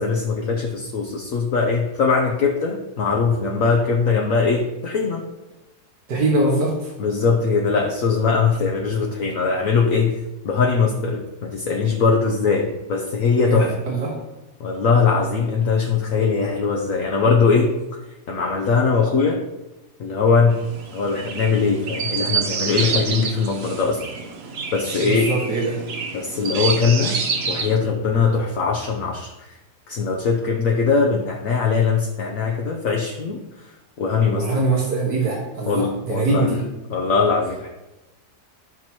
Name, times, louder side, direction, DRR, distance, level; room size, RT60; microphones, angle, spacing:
voice 1, 0.0-5.3 7.0-10.1 10.4-13.7 14.6-17.7 18.3-19.4 20.0-20.6 20.9-24.0 24.7-25.3 26.1-27.2 27.5-29.5 29.9-33.7 34.0-34.4 35.7-36.5 36.9-37.7, left 5 dB, 60° left, 0 dB, 1.1 m, -21 dB
voice 2, 6.1-6.9 13.5-14.2 25.0-25.8 34.3-36.6, right 2 dB, 80° right, -4 dB, 2.0 m, -22 dB
Chirp tweet, 20.5-27.8, right 5 dB, 50° right, 0.8 m, -28 dB
12.0 x 6.0 x 2.9 m, 1.0 s
omnidirectional pair, 1.7 m